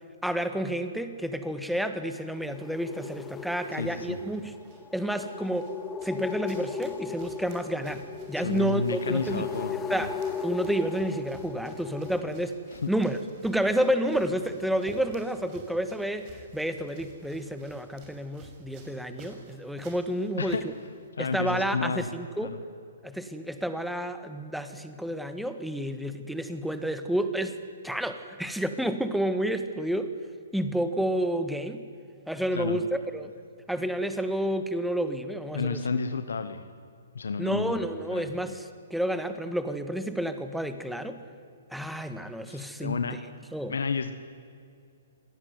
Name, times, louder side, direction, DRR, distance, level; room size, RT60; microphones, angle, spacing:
voice 1, 0.2-4.5 4.9-5.7 6.0-8.0 8.3-10.1 10.4-12.5 12.9-20.6 21.2-22.5 23.0-27.5 27.8-30.1 30.5-31.8 32.3-33.3 33.7-35.8 37.4-41.2 41.7-43.1 43.5-43.7, right 1 dB, ahead, 9 dB, 1.6 m, -30 dB
sound 1, 2.3-12.2, left 6 dB, 15° left, 1.2 m, -37 dB
voice 2, 3.8-4.2 8.4-10.1 12.7-12.9 20.4-20.6 21.2-22.1 22.4-22.6 32.5-32.8 35.5-36.6 37.1-37.8 38.1-38.3 42.5-43.2 43.7-44.1, left 4 dB, 85° left, 9 dB, 1.4 m, -31 dB
sound 2, 4.1-21.1, right 2 dB, 35° right, 6.1 m, -52 dB
26.0 x 18.0 x 9.6 m, 2.4 s
hypercardioid pair, 140°, 0 cm